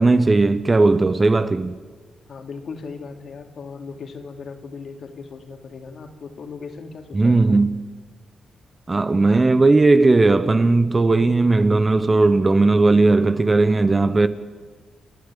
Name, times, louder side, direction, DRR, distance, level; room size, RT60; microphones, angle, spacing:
voice 1, 0.0-1.8 7.1-7.8 8.9-14.3, right 3 dB, 25° right, 0.8 m, -17 dB
voice 2, 2.3-7.6, left 5 dB, 55° left, 2.9 m, -37 dB
28.0 x 11.5 x 9.9 m
cardioid pair, 110°, 0 cm